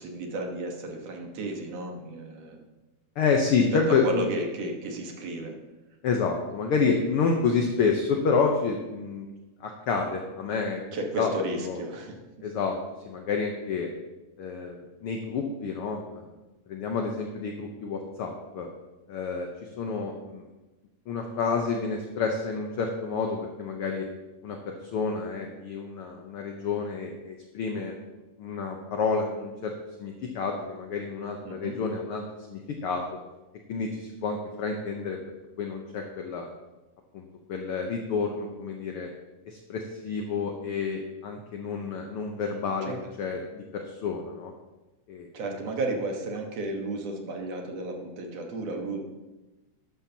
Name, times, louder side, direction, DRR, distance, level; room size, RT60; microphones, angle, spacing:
voice 1, 0.0-2.6 3.5-5.6 10.9-12.2 31.5-31.8 42.8-43.1 45.3-49.1, right 2 dB, 60° right, 2 dB, 2.3 m, -33 dB
voice 2, 3.2-4.3 6.0-9.3 9.6-10.8 11.2-11.3 11.6-11.8 12.4-12.8 13.0-13.9 14.4-16.2 16.7-18.7 19.1-19.5 19.8-20.4 21.1-24.1 24.4-27.9 28.4-29.7 30.0-32.2 32.5-33.0 33.7-35.2 35.6-36.5 37.1-39.1 39.5-42.9 43.2-44.5 45.1-45.3, left 5 dB, 70° left, 2 dB, 1.4 m, -29 dB
13.0 x 11.5 x 2.9 m, 1.1 s
omnidirectional pair, 3.6 m